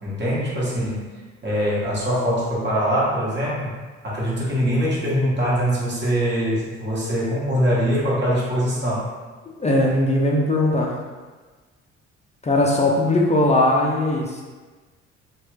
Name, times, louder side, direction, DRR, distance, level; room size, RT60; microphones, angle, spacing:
voice 1, 0.0-1.0 1.4-3.8 4.0-9.0, equal, 30° right, -7 dB, 1.4 m, -23 dB
voice 2, 9.6-11.0 12.4-14.4, left 1 dB, 20° left, -2 dB, 0.5 m, -19 dB
3.0 x 2.4 x 3.2 m, 1.3 s
hypercardioid pair, 50°, 36 cm